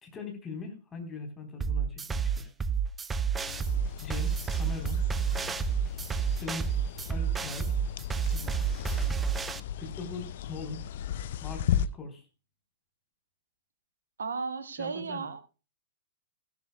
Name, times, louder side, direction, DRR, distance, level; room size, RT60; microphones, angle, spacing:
voice 1, 0.0-2.5 4.0-5.0 6.4-6.7 7.1-7.7 8.3-8.6 9.8-10.8 11.4-12.2 14.8-15.3, left 3 dB, 20° left, 3.8 m, -40 dB
sound 1, 1.6-9.6, right 6 dB, 15° right, 0.6 m, -30 dB
sound 2, 3.5-11.9, left 10 dB, 55° left, 0.5 m, -36 dB
voice 2, 14.2-15.5, right 5 dB, 70° right, 1.3 m, -34 dB
17.0 x 12.0 x 2.2 m
figure-of-eight pair, 105°, 0 cm